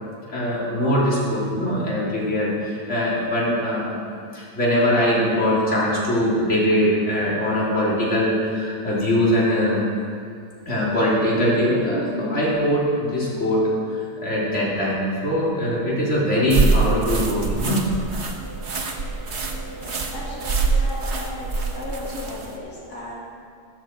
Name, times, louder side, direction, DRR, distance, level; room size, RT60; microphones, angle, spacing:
voice 1, 0.3-4.0 4.3-9.9 10.7-13.6 13.9-17.8, equal, 50° left, -7 dB, 3.7 m, -22 dB
sound 1, 16.5-22.6, right 4 dB, 45° right, 1.5 m, -25 dB
voice 2, 19.8-23.1, left 2 dB, 85° left, -6 dB, 3.3 m, -36 dB
14.5 x 14.0 x 4.5 m, 2.4 s
omnidirectional pair, 1.6 m